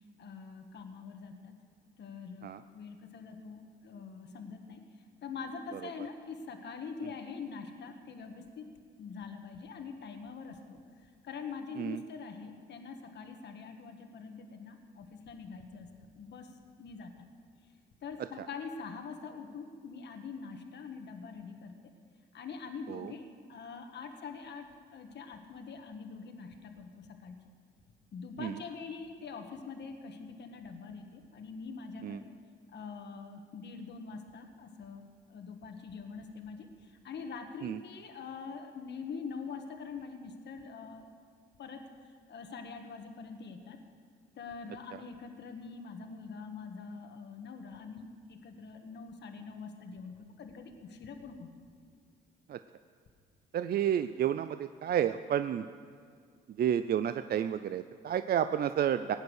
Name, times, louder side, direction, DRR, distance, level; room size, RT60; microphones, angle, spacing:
voice 1, 0.2-1.6 2.0-4.8 5.2-8.6 9.0-10.8 11.2-15.9 16.2-17.3 18.0-21.7 22.3-27.4 28.1-32.3 32.7-35.0 35.3-41.1 41.6-41.9 42.3-43.8 44.4-51.5, left 5 dB, 60° left, 5 dB, 1.5 m, -44 dB
voice 2, 53.5-55.6 56.6-59.2, right 9 dB, 50° right, 11 dB, 0.4 m, -30 dB
17.5 x 9.5 x 6.4 m, 2.1 s
cardioid pair, 90°, 20 cm